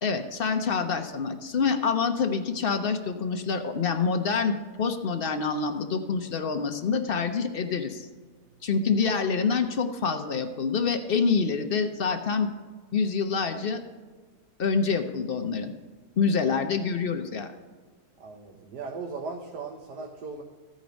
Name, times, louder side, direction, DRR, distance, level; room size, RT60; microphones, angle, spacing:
voice 1, 0.0-8.1 8.6-12.5 12.9-13.8 14.6-15.7 16.2-17.5, left 5 dB, 55° left, 6 dB, 0.6 m, -26 dB
voice 2, 18.2-20.4, right 4 dB, 75° right, 2 dB, 1.5 m, -38 dB
15.0 x 5.2 x 5.1 m, 1.5 s
omnidirectional pair, 1.8 m